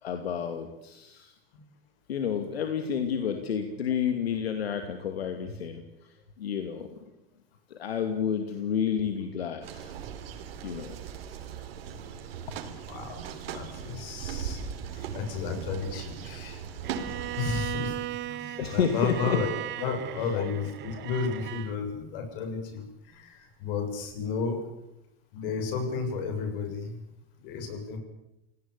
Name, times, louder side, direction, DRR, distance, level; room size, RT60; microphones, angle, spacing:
voice 1, 0.0-1.3 2.1-5.8 6.4-6.9 7.7-9.9 10.6-10.9 18.6-19.4 19.8-19.9 20.2-20.4, left 7 dB, 90° left, 6 dB, 2.7 m, -30 dB
sound 1, 9.6-17.4, right 8 dB, 75° right, 4.3 m, -38 dB
voice 2, 13.5-14.6 14.9-16.6 17.2-19.5 19.8-24.7 25.3-26.9 27.4-28.0, left 5 dB, 65° left, 7 dB, 7.6 m, -33 dB
Bowed string instrument, 16.8-21.8, right 14 dB, 35° right, 1.2 m, -37 dB
28.0 x 18.5 x 8.5 m, 0.89 s
hypercardioid pair, 115°, 30 cm